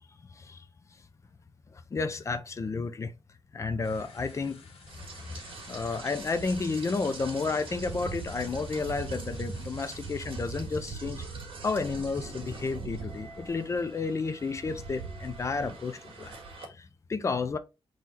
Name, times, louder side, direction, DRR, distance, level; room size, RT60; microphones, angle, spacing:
voice 1, 1.9-3.1 3.5-4.6 5.7-11.2 11.6-17.6, left 4 dB, 30° left, 0.5 m, -31 dB
sound 1, 3.8-10.8, left 3 dB, 75° left, 1.5 m, -53 dB
Rain, 4.9-16.7, right 3 dB, 65° right, 1.8 m, -41 dB
3.8 x 3.1 x 4.1 m
wide cardioid pair, 170°, 10 cm